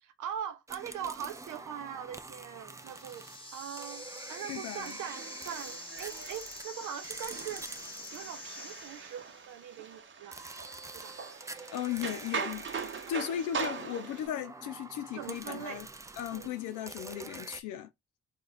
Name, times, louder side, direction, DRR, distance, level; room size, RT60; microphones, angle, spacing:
voice 1, 0.0-10.4 10.9-11.2 13.1-13.2 15.1-15.8 16.3-16.6, right 9 dB, 85° right, 0.8 m, -42 dB
sound 1, 0.7-9.5 10.3-17.6, right 3 dB, 10° right, 0.4 m, -47 dB
sound 2, 2.8-9.5, left 2 dB, 15° left, 1.0 m, -46 dB
voice 2, 4.5-5.0 11.7-12.7 13.1-15.9 16.2-17.9, left 10 dB, 85° left, 0.6 m, -36 dB
sound 3, 4.8-14.3, right 5 dB, 40° right, 0.8 m, -41 dB
3.2 x 2.3 x 3.9 m
cardioid pair, 90°, 30 cm